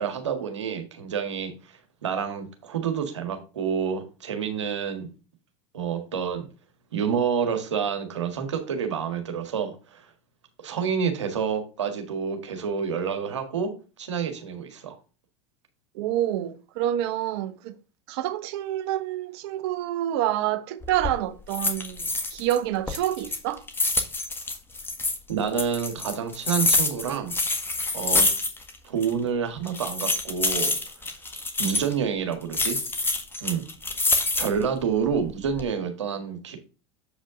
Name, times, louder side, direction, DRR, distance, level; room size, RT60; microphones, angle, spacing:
voice 1, 0.0-5.1 5.7-6.5 6.9-10.0 10.6-13.7 14.0-14.9 25.3-27.3 27.9-28.3 28.8-30.7 31.6-32.8 33.4-33.6 34.4-36.6, right 7 dB, 80° right, 1.7 m, -28 dB
voice 2, 15.9-17.8 18.1-23.6, right 12 dB, 60° right, 1.1 m, -28 dB
sound 1, 20.8-21.1 21.5-22.6 22.9-25.2 25.6-28.8 29.0-29.1 29.7-31.9 32.5-34.6 35.1-35.7, left 2 dB, 15° left, 1.6 m, -26 dB
7.8 x 5.1 x 3.7 m
hypercardioid pair, 85°, 15 cm